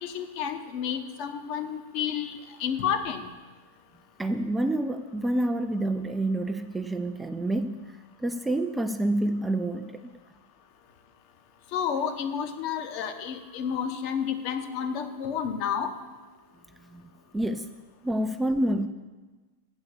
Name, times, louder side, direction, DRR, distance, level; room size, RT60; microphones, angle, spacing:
voice 1, 0.0-3.3 11.7-15.9, left 8 dB, 45° left, 8 dB, 0.8 m, -30 dB
voice 2, 4.2-7.9 8.2-10.0 16.8-17.7 18.0-18.9, right 1 dB, 10° right, 7 dB, 0.4 m, -28 dB
8.2 x 6.3 x 6.8 m, 1.3 s
figure-of-eight pair, 95°, 0 cm